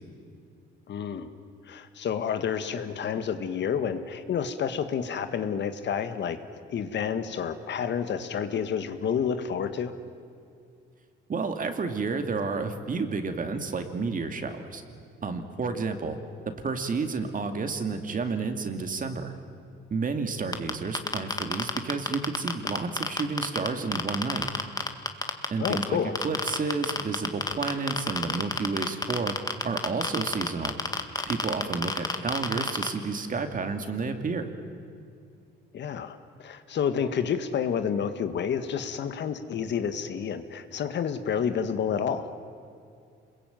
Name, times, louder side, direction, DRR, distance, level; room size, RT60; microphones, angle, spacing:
voice 1, 0.9-1.3 1.7-6.4 6.7-9.9 25.6-26.2 35.7-42.3, left 7 dB, 65° left, 10 dB, 1.6 m, -29 dB
voice 2, 11.3-14.8 15.2-16.2 16.6-19.3 19.9-24.5 25.5-26.0 26.2-29.3 29.6-30.8 31.3-34.5, right 4 dB, 45° right, 7 dB, 2.5 m, -30 dB
sound 1, 20.5-23.7 23.9-25.8 26.1-32.9, left 3 dB, 20° left, 1.9 m, -27 dB
26.5 x 22.0 x 9.2 m, 2.4 s
cardioid pair, 90°, 20 cm